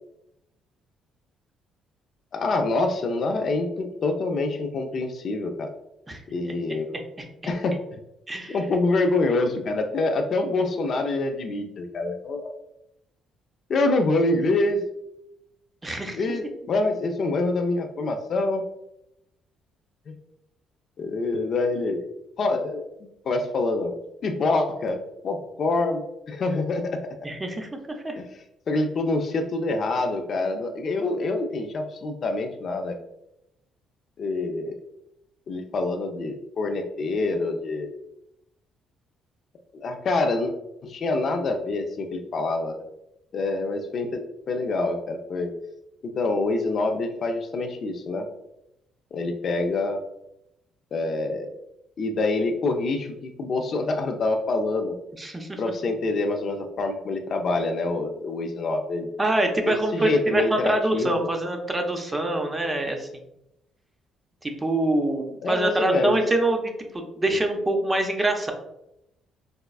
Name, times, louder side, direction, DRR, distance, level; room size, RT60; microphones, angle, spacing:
voice 1, 2.3-5.7 6.3-6.9 7.5-8.0 8.5-12.5 13.7-14.8 16.1-18.6 20.1-20.2 21.0-22.0 22.4-23.9 24.2-27.0 28.2-28.3 28.7-32.9 34.2-34.8 35.5-37.9 39.7-40.5 40.8-42.8 43.3-45.5 46.0-48.3 49.1-50.0 50.9-51.5 52.0-55.0 55.6-59.1 59.6-61.3 65.4-66.2 67.3-67.4, left 2 dB, 55° left, 5 dB, 0.4 m, -26 dB
voice 2, 6.1-7.3 8.3-8.6 15.8-16.2 27.2-28.2 55.2-55.6 59.2-63.2 64.4-68.5, right 1 dB, 20° right, 4 dB, 0.6 m, -25 dB
4.2 x 2.2 x 2.3 m, 0.84 s
supercardioid pair, 75°, 0 cm